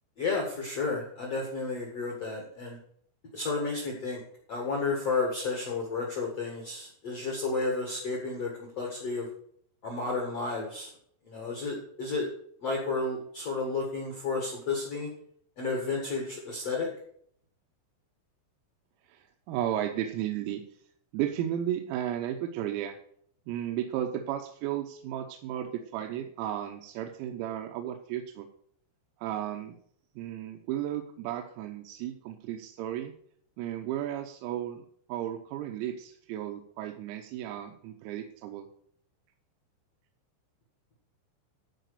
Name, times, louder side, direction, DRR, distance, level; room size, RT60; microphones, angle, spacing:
voice 1, 0.2-2.8 3.3-4.2 4.5-8.5 8.8-9.3 9.8-10.9 11.2-12.2 12.6-15.1 15.6-16.9, left 3 dB, 80° left, 0 dB, 1.4 m, -32 dB
voice 2, 19.1-20.6 21.1-23.0 23.5-28.5 29.2-29.8 30.2-33.1 33.6-38.7, right 11 dB, 90° right, 5 dB, 3.6 m, -34 dB
14.0 x 5.0 x 6.6 m, 0.64 s
omnidirectional pair, 6.0 m